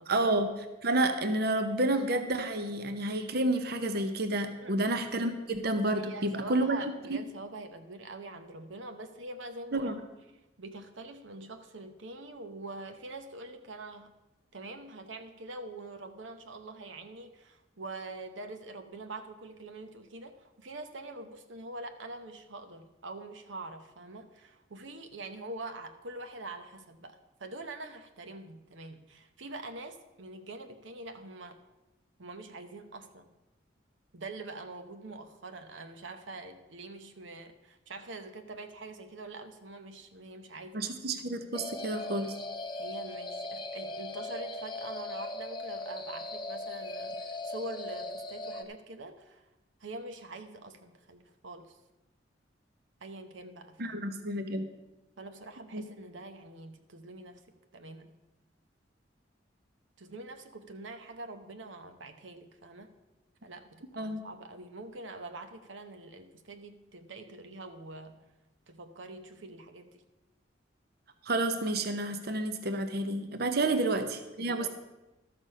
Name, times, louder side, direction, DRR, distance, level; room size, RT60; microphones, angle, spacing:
voice 1, 0.1-6.8 7.1-7.2 9.7-10.0 40.7-42.3 53.8-54.7 55.7-55.8 64.0-64.2 71.2-74.7, right 2 dB, 55° right, 8 dB, 0.8 m, -30 dB
voice 2, 6.0-9.9 10.6-14.1 14.5-31.6 32.2-33.3 34.1-40.8 42.8-49.5 49.8-51.8 53.0-54.1 55.2-57.4 57.7-58.1 60.0-62.9 63.4-68.2 68.7-70.0 73.6-73.8 74.4-74.7, right 2 dB, 85° right, 7 dB, 0.9 m, -44 dB
sound 1, 41.5-48.6, left 2 dB, 25° left, 0.8 m, -39 dB
12.5 x 6.8 x 5.5 m, 1.0 s
head